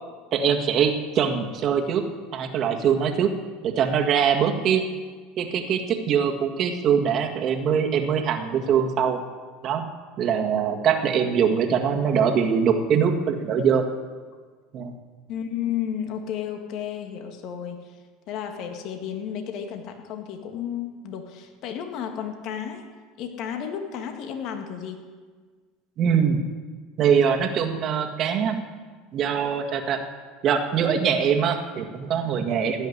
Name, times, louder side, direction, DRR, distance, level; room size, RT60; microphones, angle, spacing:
voice 1, 0.3-2.0 2.3-3.3 3.6-4.9 5.4-9.2 9.6-9.9 10.2-13.8 14.7-14.9 26.0-26.4 27.0-28.6 29.1-30.0 30.4-32.9, right 7 dB, 50° right, 4 dB, 1.8 m, -22 dB
voice 2, 10.3-10.6 15.3-17.9 18.3-22.8 23.2-25.0, left 9 dB, 55° left, 4 dB, 1.9 m, -33 dB
16.5 x 6.3 x 10.0 m, 1.5 s
supercardioid pair, 110°, 0 cm